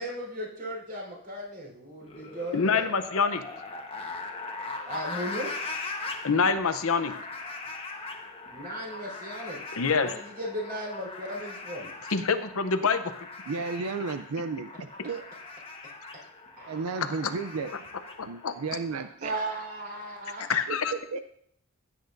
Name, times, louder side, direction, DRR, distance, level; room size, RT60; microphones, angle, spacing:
voice 1, 0.0-2.8 4.8-5.5 8.5-11.9 16.6-16.9 19.2-20.5, right 1 dB, 45° right, -1 dB, 4.3 m, -36 dB
sound 1, 2.0-19.0, left 3 dB, 25° left, 1.2 m, -40 dB
voice 2, 2.5-3.4 6.2-7.1 9.7-10.1 12.1-13.3 17.0-17.3 18.2-18.5 20.5-20.9, left 5 dB, 70° left, 10 dB, 0.7 m, -26 dB
voice 3, 13.5-15.3 16.7-17.7 18.2-19.3 20.7-21.2, right 4 dB, 85° right, 10 dB, 0.5 m, -33 dB
16.0 x 8.4 x 2.6 m, 0.67 s
head